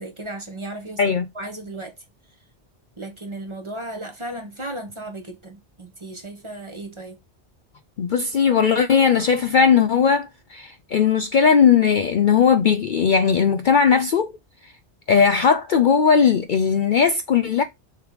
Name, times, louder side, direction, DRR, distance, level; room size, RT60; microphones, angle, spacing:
voice 1, 0.0-2.0 3.0-7.2, right 1 dB, 25° right, 1.4 m, -35 dB
voice 2, 8.0-14.3 15.1-17.6, left 6 dB, 55° left, 0.6 m, -18 dB
6.6 x 3.4 x 4.9 m
omnidirectional pair, 1.2 m